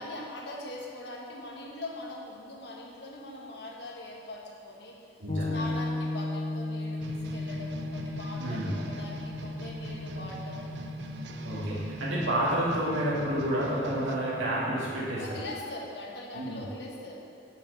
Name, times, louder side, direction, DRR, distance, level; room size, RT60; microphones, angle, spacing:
voice 1, 0.0-5.1 5.5-10.9 15.1-17.3, left 2 dB, 60° left, -1 dB, 1.1 m, -41 dB
voice 2, 5.2-5.7 8.4-8.7 11.4-15.2 16.3-16.6, right 1 dB, 90° right, -7 dB, 1.9 m, -30 dB
sound 1, 5.3-15.0, left 2 dB, 40° left, 0.6 m, -37 dB
sound 2, 7.0-14.2, right 1 dB, 65° right, 0.5 m, -41 dB
5.8 x 5.7 x 6.5 m, 2.5 s
head